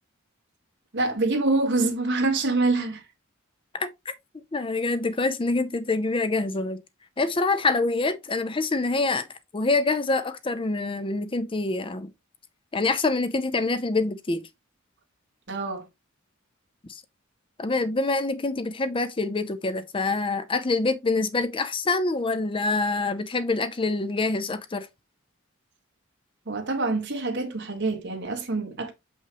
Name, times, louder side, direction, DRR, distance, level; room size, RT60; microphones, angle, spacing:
voice 1, 0.9-3.0 15.5-15.9 26.5-28.9, right 3 dB, 60° right, 1.7 m, -25 dB
voice 2, 3.7-4.1 4.5-6.8 7.2-12.1 12.7-14.4 16.9-17.0 17.6-24.9, left 3 dB, 25° left, 0.6 m, -26 dB
6.4 x 5.6 x 3.0 m
head